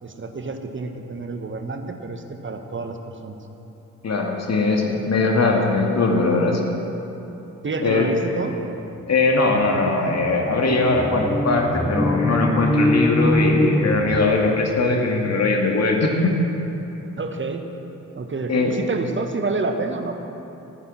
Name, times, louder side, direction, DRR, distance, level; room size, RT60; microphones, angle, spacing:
voice 1, 0.0-3.4 7.6-8.6 17.2-17.6 18.1-20.3, right 3 dB, 30° right, 5 dB, 1.4 m, -28 dB
voice 2, 4.0-6.6 7.8-8.1 9.1-16.4 18.5-18.7, left 3 dB, 35° left, 1 dB, 2.1 m, -20 dB
sound 1, 9.6-14.6, left 1 dB, 5° left, 0.7 m, -23 dB
15.0 x 9.4 x 6.1 m, 3.0 s
figure-of-eight pair, 40°, 42 cm